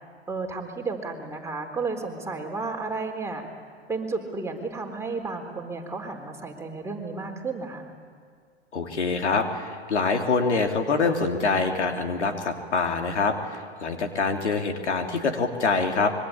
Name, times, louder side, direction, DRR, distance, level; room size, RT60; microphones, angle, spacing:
voice 1, 0.3-3.4 3.9-7.9, right 3 dB, 10° right, 1 dB, 3.9 m, -32 dB
voice 2, 8.7-16.1, left 4 dB, 80° left, 4 dB, 3.0 m, -25 dB
25.5 x 23.5 x 8.8 m, 2.1 s
hypercardioid pair, 105°, 34 cm